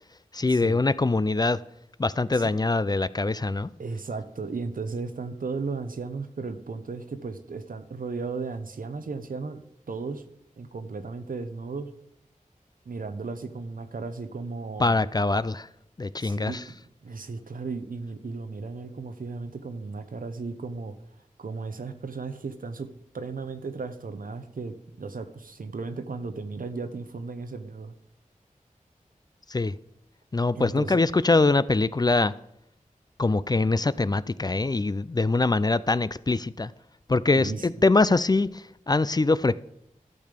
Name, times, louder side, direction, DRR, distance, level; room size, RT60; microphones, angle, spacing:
voice 1, 0.3-1.6 2.0-3.7 14.8-15.7 16.0-16.6 29.5-29.7 30.3-32.3 33.2-36.7 37.1-39.6, left 3 dB, 30° left, 0.4 m, -23 dB
voice 2, 3.8-9.6 9.9-10.2 10.6-11.9 12.9-15.0 16.2-16.6 17.0-21.0 21.4-22.9 23.1-27.9 30.6-31.0 37.3-37.7, right 4 dB, 85° right, 0.8 m, -35 dB
12.5 x 6.6 x 5.2 m
wide cardioid pair, 55°, 14 cm